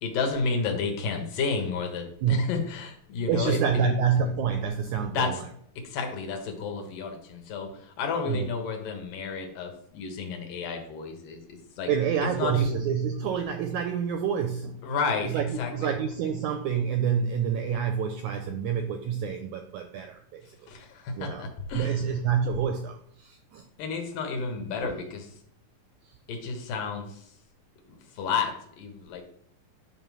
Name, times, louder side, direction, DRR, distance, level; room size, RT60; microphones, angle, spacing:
voice 1, 0.0-4.0 5.1-5.4 5.8-11.9 12.4-12.7 14.8-15.9 20.7-22.0 23.8-25.3 26.3-27.2 27.9-29.2, left 4 dB, 70° left, 4 dB, 2.9 m, -31 dB
voice 2, 2.2-2.5 3.3-5.5 8.3-8.5 11.9-14.8 15.2-20.7 21.1-21.5 21.7-23.6 24.8-25.0 26.1-26.2, right 7 dB, 85° right, 7 dB, 1.7 m, -28 dB
10.5 x 3.8 x 6.1 m, 0.67 s
omnidirectional pair, 4.1 m